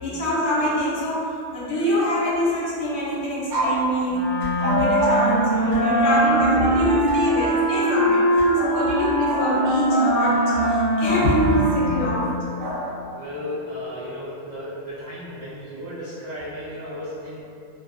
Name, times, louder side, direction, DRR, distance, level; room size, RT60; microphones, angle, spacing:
voice 1, 0.0-12.3, equal, 75° left, -7 dB, 1.0 m, -25 dB
sound 1, 2.1-2.6 3.0-3.1 3.5-3.8 4.6-6.2 8.5-10.7 12.6-13.2, right 1 dB, 85° right, 1.0 m, -29 dB
Wind instrument woodwind instrument, 4.1-12.6, right 1 dB, 20° left, 0.5 m, -22 dB
sound 2, 4.4-4.5 5.7-5.8 7.0-7.2 8.3-8.5 9.7-9.8, right 1 dB, 40° left, 0.9 m, -39 dB
voice 2, 6.0-6.8 13.1-17.4, left 1 dB, 50° right, -12 dB, 0.6 m, -35 dB
2.6 x 2.1 x 2.3 m, 2.5 s
omnidirectional pair, 1.2 m